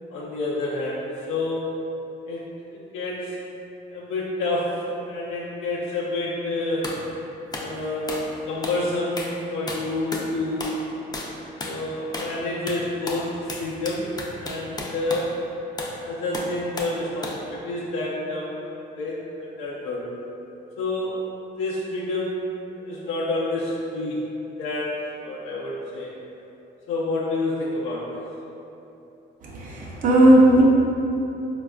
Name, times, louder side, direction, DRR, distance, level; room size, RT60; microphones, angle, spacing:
voice 1, 0.1-1.8 2.3-2.5 2.9-3.4 3.9-7.0 7.6-10.8 11.6-14.1 14.4-15.5 16.0-20.0 20.8-21.3 21.6-24.2 24.6-26.1 26.9-28.2, left 2 dB, 90° left, -6 dB, 0.4 m, -28 dB
sound 1, 6.8-7.0 7.5-7.7 8.1-8.3 8.6-8.8 9.2-9.4 9.7-10.3 10.6-10.8 11.1-11.3 11.6-11.8 12.1-12.4 12.7-15.3 15.8-16.0 16.3-17.0 17.2-17.4, left 2 dB, 20° left, 0.4 m, -33 dB
voice 2, 29.6-30.6, right 1 dB, 45° right, -6 dB, 0.6 m, -15 dB
4.0 x 2.3 x 2.3 m, 2.9 s
cardioid pair, 90°, 20 cm